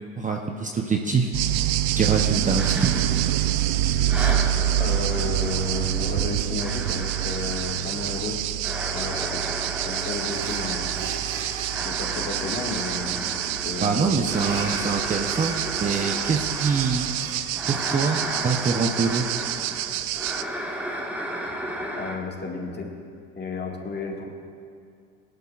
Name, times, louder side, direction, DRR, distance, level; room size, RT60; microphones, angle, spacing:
voice 1, 0.2-1.3 1.9-3.1 13.8-15.5 15.8-17.1 17.7-19.2, right 5 dB, 20° right, 2 dB, 0.8 m, -24 dB
sound 1, 1.3-20.4, right 12 dB, 60° right, 0.6 m, -27 dB
sound 2, 2.6-3.8 4.1-22.2, equal, 5° right, 1.4 m, -34 dB
voice 2, 4.8-8.4 8.9-9.4 9.8-10.9 11.9-13.2 13.7-14.3 14.8-14.9 21.9-22.9 23.4-24.3, left 3 dB, 25° left, 1 dB, 1.9 m, -32 dB
sound 3, 10.2-21.0, right 3 dB, 90° right, 2.1 m, -41 dB
18.5 x 11.5 x 2.5 m, 2.3 s
hypercardioid pair, 90°, 41 cm